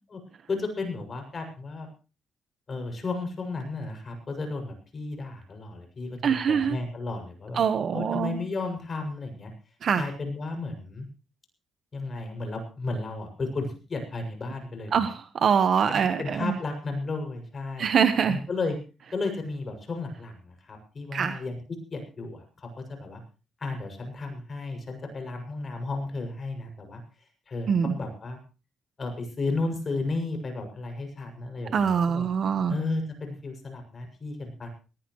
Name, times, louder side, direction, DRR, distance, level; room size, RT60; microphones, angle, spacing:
voice 1, 0.5-1.9 2.7-7.6 7.9-9.5 10.0-11.1 11.9-15.1 15.9-17.9 18.3-18.8 19.1-21.6 21.9-23.2 23.6-27.0 27.5-28.4 29.0-32.2 32.7-34.7, left 3 dB, 40° left, 5 dB, 6.9 m, -33 dB
voice 2, 6.2-6.8 7.5-8.4 9.8-10.0 14.9-16.5 17.8-18.4 21.1-21.4 27.7-27.9 31.7-32.7, right 7 dB, 55° right, 9 dB, 1.3 m, -24 dB
19.0 x 19.0 x 3.2 m, 0.34 s
cardioid pair, 90°, 0 cm